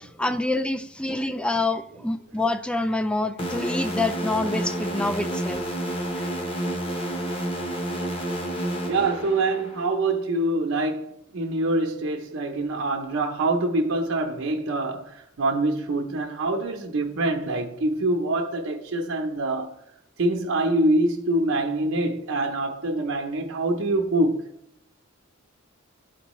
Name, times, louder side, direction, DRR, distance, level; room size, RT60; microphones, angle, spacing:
voice 1, 0.0-5.6 6.1-6.3, left 2 dB, 5° left, 0.3 m, -27 dB
sound 1, 3.4-9.9, right 1 dB, 25° left, 1.0 m, -30 dB
voice 2, 8.9-19.8 20.2-24.5, right 2 dB, 80° right, 0.7 m, -25 dB
11.5 x 4.5 x 3.0 m
head